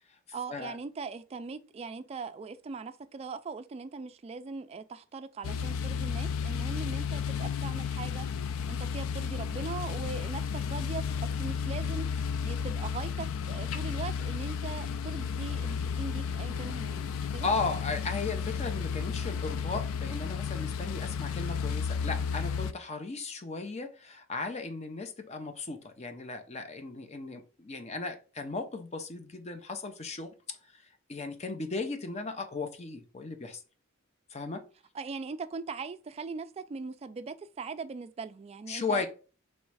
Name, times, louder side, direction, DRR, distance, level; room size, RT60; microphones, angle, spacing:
voice 1, 0.3-17.5 34.9-39.0, right 4 dB, 30° right, 0.3 m, -40 dB
sound 1, 5.4-22.7, left 6 dB, 80° left, 0.3 m, -33 dB
voice 2, 17.4-33.6 34.3-34.7 38.7-39.1, left 4 dB, 35° left, 0.6 m, -36 dB
3.1 x 3.1 x 4.7 m
head